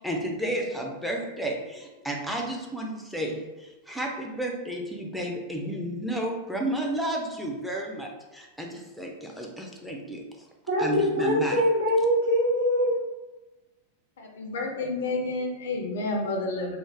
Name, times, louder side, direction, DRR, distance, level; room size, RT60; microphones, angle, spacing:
voice 1, 0.0-10.2 10.8-11.6, right 1 dB, ahead, 0 dB, 0.4 m, -32 dB
voice 2, 10.7-12.9, equal, 70° right, -9 dB, 0.8 m, -23 dB
voice 3, 14.2-16.8, left 2 dB, 60° left, 2 dB, 0.4 m, -30 dB
2.5 x 2.0 x 3.2 m, 1.1 s
figure-of-eight pair, 90°, 0 cm